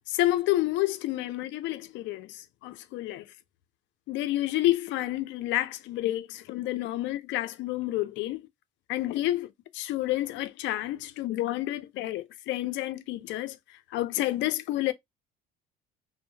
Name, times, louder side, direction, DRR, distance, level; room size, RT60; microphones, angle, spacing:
voice 1, 0.1-3.2 4.1-8.4 8.9-9.5 9.7-13.6 13.9-14.9, left 15 dB, 65° left, 0.5 m, -29 dB
2.7 x 2.1 x 2.7 m
cardioid pair, 120°, 21 cm